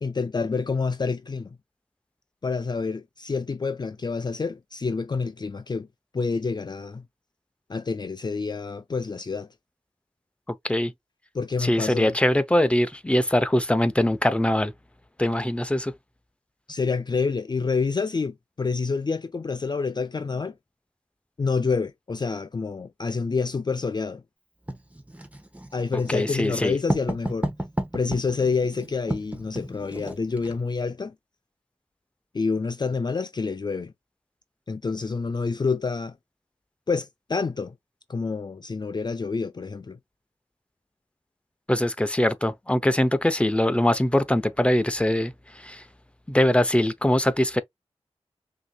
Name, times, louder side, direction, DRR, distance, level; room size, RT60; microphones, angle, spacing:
voice 1, 0.0-1.5 2.4-5.9 6.1-7.0 7.7-9.5 11.3-12.1 16.7-20.5 21.4-24.2 25.7-27.5 27.9-31.1 32.3-33.9 34.7-36.1 36.9-37.7 38.1-40.0, left 4 dB, 40° left, 0.4 m, -28 dB
voice 2, 11.6-14.7 15.2-15.9 25.9-26.8 41.7-45.8 46.3-47.6, left 1 dB, 10° left, 0.7 m, -22 dB
Writing, 24.7-30.6, right 1 dB, 15° right, 1.2 m, -32 dB
5.7 x 2.8 x 2.3 m
cardioid pair, 40°, 11 cm